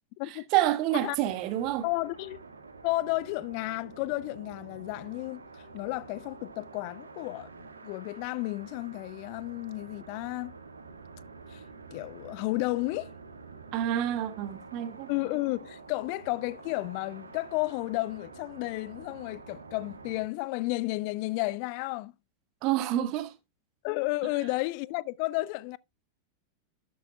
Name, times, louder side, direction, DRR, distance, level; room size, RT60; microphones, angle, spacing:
voice 1, 0.3-1.9 13.7-15.1 22.6-23.3, right 13 dB, 40° right, 1.4 m, -28 dB
sound 1, 1.1-20.2, right 4 dB, 80° right, 1.6 m, -48 dB
voice 2, 1.8-2.4 2.8-10.6 11.5-11.6 11.9-13.1 15.1-22.1 23.8-25.8, left 21 dB, 45° left, 0.4 m, -32 dB
11.5 x 8.5 x 2.2 m
figure-of-eight pair, 90°, 0 cm